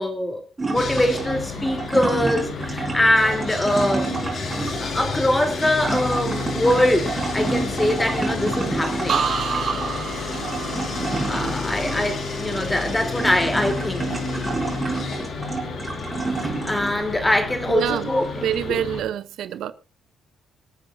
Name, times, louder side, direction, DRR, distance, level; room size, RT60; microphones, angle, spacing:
voice 1, 0.0-4.1 4.8-9.2 11.3-14.1 16.4-18.8, left 1 dB, 10° left, 3.2 m, -23 dB
sound 1, 0.6-17.2 17.7-18.6, right 3 dB, 20° right, 4.4 m, -29 dB
Sawing, 0.7-19.0, left 4 dB, 60° left, 5.1 m, -31 dB
sound 2, 9.1-12.9 13.3-13.8, right 6 dB, 55° right, 2.8 m, -29 dB
voice 2, 17.7-19.7, right 10 dB, 80° right, 0.8 m, -26 dB
25.0 x 8.7 x 2.6 m
cardioid pair, 90°, 0 cm